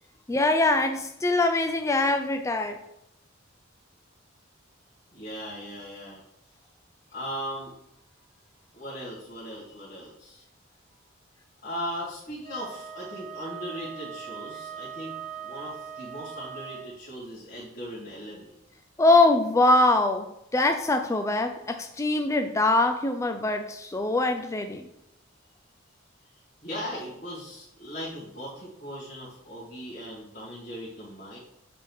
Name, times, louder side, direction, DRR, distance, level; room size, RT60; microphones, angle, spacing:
voice 1, 0.3-2.8 19.0-24.9, left 2 dB, 15° left, 6 dB, 0.4 m, -23 dB
voice 2, 5.1-6.2 7.1-7.7 8.7-10.4 11.6-15.1 15.4-18.5 26.6-31.4, equal, 45° left, -9 dB, 2.1 m, -38 dB
Wind instrument woodwind instrument, 12.4-17.0, right 7 dB, 40° right, 0.6 m, -40 dB
7.5 x 3.6 x 4.6 m, 0.81 s
head